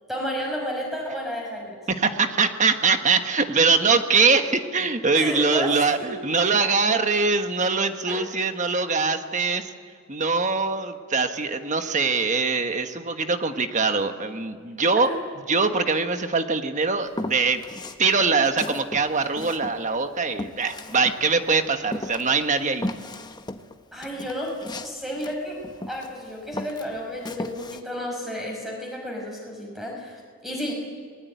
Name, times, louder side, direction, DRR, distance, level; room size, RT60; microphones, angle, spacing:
voice 1, 0.1-1.8 5.1-6.1 8.1-8.4 12.3-12.4 14.9-15.2 23.9-24.5 24.8-25.6 25.9-30.7, equal, ahead, 0 dB, 6.2 m, -32 dB
voice 2, 1.9-9.7 10.1-15.1 15.5-17.6 18.0-22.9, right 4 dB, 35° right, 7 dB, 1.4 m, -23 dB
Walk footsteps, 17.1-18.0 18.4-21.5 21.9-26.2 26.5-27.8, left 1 dB, 20° left, 1.0 m, -35 dB
28.0 x 20.5 x 9.5 m, 2.1 s
head